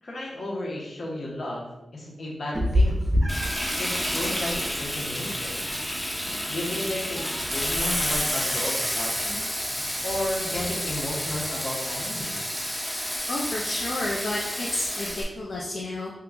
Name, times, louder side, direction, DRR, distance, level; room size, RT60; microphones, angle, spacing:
voice 1, 0.0-3.0 3.8-5.5 6.5-9.5 10.0-12.4, left 1 dB, 65° left, -3 dB, 0.9 m, -33 dB
Meow, 2.5-12.2, equal, 30° right, 0.5 m, -32 dB
Frying (food), 3.3-15.2, equal, 10° left, 0.6 m, -30 dB
voice 2, 13.3-16.1, left 2 dB, 80° left, -4 dB, 0.4 m, -31 dB
2.9 x 2.2 x 3.7 m, 0.93 s
wide cardioid pair, 80°, 0 cm